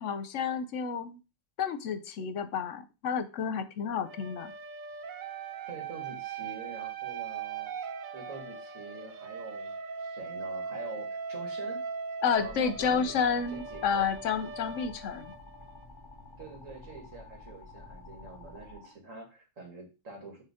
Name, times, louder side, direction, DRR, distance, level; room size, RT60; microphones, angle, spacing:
voice 1, 0.0-1.2 1.6-4.5 12.2-15.3, left 6 dB, 75° left, 11 dB, 1.1 m, -30 dB
sound 1, 4.0-15.9, right 5 dB, 55° right, 0.6 m, -39 dB
voice 2, 5.7-7.7 8.1-11.8 12.3-13.2 13.5-14.1 16.4-20.4, right 3 dB, 80° right, 2 dB, 2.3 m, -46 dB
sound 2, 12.3-18.7, left 1 dB, 5° right, 1.4 m, -52 dB
sound 3, 13.3-18.9, left 5 dB, 40° left, 1.6 m, -53 dB
6.7 x 3.8 x 4.9 m, 0.30 s
omnidirectional pair, 1.3 m